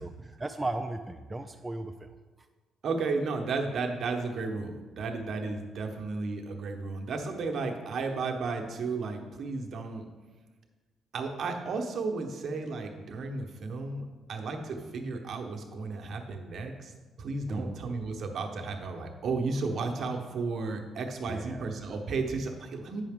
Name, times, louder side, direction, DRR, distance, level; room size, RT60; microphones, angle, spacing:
voice 1, 0.0-2.1 17.5-17.8 21.3-21.7, right 2 dB, 15° right, 5 dB, 0.4 m, -36 dB
voice 2, 2.8-10.0 11.1-14.0 14.3-16.9 17.2-23.0, right 4 dB, 60° right, 2 dB, 1.0 m, -33 dB
8.9 x 5.8 x 3.6 m, 1.3 s
cardioid pair, 90°, 0 cm